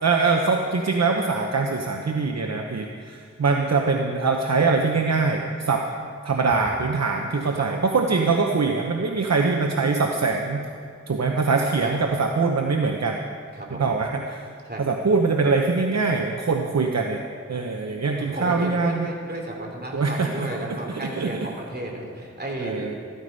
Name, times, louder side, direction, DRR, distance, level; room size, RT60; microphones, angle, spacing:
voice 1, 0.0-5.8 6.2-10.6 11.1-13.3 13.8-14.4 14.8-17.2 17.5-19.1 19.9-21.5 22.6-22.9, right 4 dB, 60° right, 2 dB, 0.9 m, -23 dB
voice 2, 13.5-13.8 14.7-14.9 18.1-22.9, right 1 dB, 35° right, 0 dB, 3.1 m, -33 dB
14.5 x 13.0 x 5.4 m, 2.2 s
wide cardioid pair, 70°, 29 cm